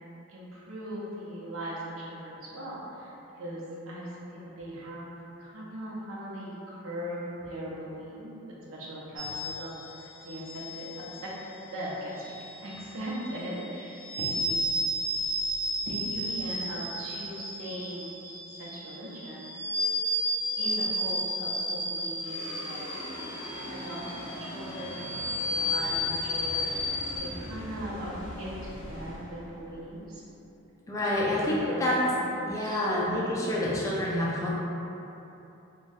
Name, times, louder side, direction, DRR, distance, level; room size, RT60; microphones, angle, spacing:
voice 1, 0.3-4.0 4.3-5.1 5.4-8.3 8.7-10.9 11.2-11.3 11.6-12.1 12.6-14.6 15.8-18.1 18.6-19.5 20.6-22.8 23.7-25.1 25.4-30.2 31.0-32.8, equal, 90° right, -6 dB, 0.6 m, -39 dB
sound 1, 9.2-27.2, left 1 dB, 20° right, 0.7 m, -33 dB
sound 2, 22.2-30.7, equal, 80° left, 0.6 m, -42 dB
voice 2, 30.9-32.0 32.5-34.5, left 1 dB, 15° left, -6 dB, 0.3 m, -28 dB
2.6 x 2.2 x 3.2 m, 2.9 s
head